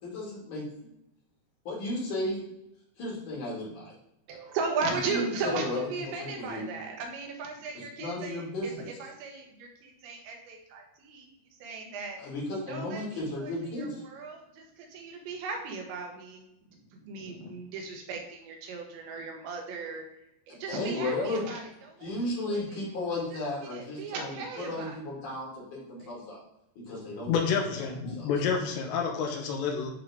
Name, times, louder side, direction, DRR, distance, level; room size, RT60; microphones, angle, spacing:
voice 1, 0.0-0.6 1.6-2.4 3.0-3.9 5.1-5.8 6.1-6.6 7.7-8.9 12.2-14.0 20.7-21.4 22.0-26.4 26.9-27.3 27.8-28.3, left 2 dB, 50° left, -5 dB, 3.4 m, -34 dB
voice 2, 4.3-8.5 9.0-11.3 11.6-12.2 12.7-16.5 16.9-20.0 20.5-22.1 22.5-22.8 23.3-23.4 23.7-25.0 26.0-26.1, right 4 dB, 85° right, 1 dB, 3.5 m, -37 dB
voice 3, 27.3-29.9, left 6 dB, 80° left, 1 dB, 3.2 m, -29 dB
11.0 x 3.8 x 3.6 m, 0.85 s
omnidirectional pair, 5.1 m